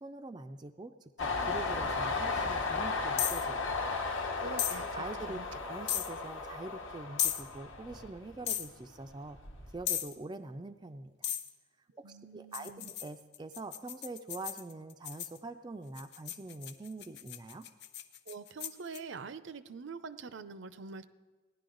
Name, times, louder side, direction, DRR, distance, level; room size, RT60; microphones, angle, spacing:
voice 1, 0.0-4.0 4.9-5.4 5.6-9.4 9.7-11.3 12.0-17.7, right 2 dB, 20° right, 7 dB, 0.4 m, -44 dB
Train, 1.2-8.6 9.0-9.8, left 4 dB, 85° left, 1.3 m, -35 dB
sound 1, 3.2-3.5 4.6-4.8 5.9-6.1 7.2-7.4 8.5-8.7 9.9-10.1 11.2-11.5 12.5-15.4 16.0-19.0, left 11 dB, 55° left, 0.6 m, -35 dB
voice 2, 4.4-5.6 12.0-12.9 18.3-21.0, right 4 dB, 70° right, 13 dB, 0.6 m, -45 dB
17.0 x 10.5 x 3.9 m, 1.3 s
head